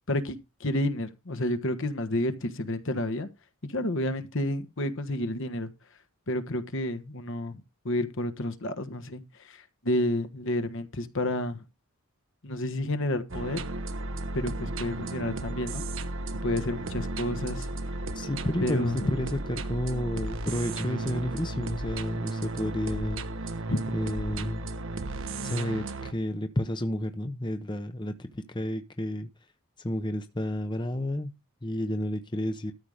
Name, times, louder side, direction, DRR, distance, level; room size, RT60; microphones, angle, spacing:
voice 1, 0.0-3.3 3.7-5.7 6.3-11.6 12.4-13.6 14.3-15.8 16.4-17.7 18.6-19.1 23.7-23.8, left 1 dB, 60° left, 1.3 m, -30 dB
sound 1, 13.3-26.1, right 2 dB, 60° right, 1.1 m, -34 dB
voice 2, 18.1-23.2 23.9-24.6 25.4-29.3 29.8-31.3 31.6-32.7, left 1 dB, 20° left, 0.9 m, -31 dB
13.0 x 5.8 x 5.0 m
head